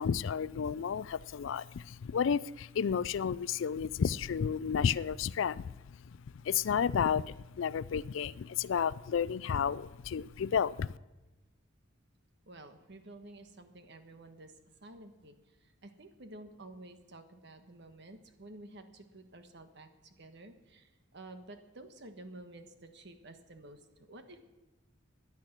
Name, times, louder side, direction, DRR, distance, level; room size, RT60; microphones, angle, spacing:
voice 1, 0.0-6.0 6.4-10.9, left 7 dB, 65° left, 19 dB, 0.4 m, -32 dB
voice 2, 12.5-24.4, right 2 dB, 60° right, 7 dB, 1.4 m, -51 dB
16.5 x 10.5 x 6.0 m, 1.1 s
head